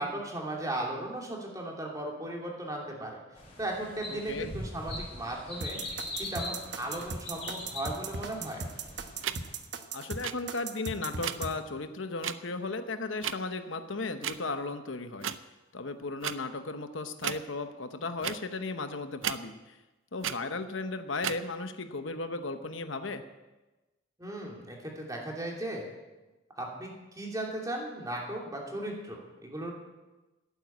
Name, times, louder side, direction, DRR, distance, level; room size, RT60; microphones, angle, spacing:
voice 1, 0.0-3.2 3.6-5.8 6.2-8.7 24.2-25.8 26.6-29.7, right 1 dB, 20° right, -1 dB, 2.8 m, -36 dB
sound 1, 3.4-9.5, left 1 dB, 30° left, 4.6 m, -42 dB
voice 2, 4.1-4.5 9.9-15.3 15.7-19.8 20.1-23.2, left 3 dB, 75° left, 8 dB, 0.9 m, -35 dB
sound 2, 5.6-11.5, right 4 dB, 60° right, 1.0 m, -38 dB
sound 3, 9.2-9.4 10.2-10.3 11.2-11.4 12.2-12.3 13.2-13.3 14.2-14.4 15.2-15.4 16.2-16.3 17.2-17.4 18.2-18.4 19.2-19.4 20.2-20.4 21.2-21.4, right 10 dB, 80° right, 0.6 m, -33 dB
12.0 x 9.3 x 8.6 m, 1.1 s
head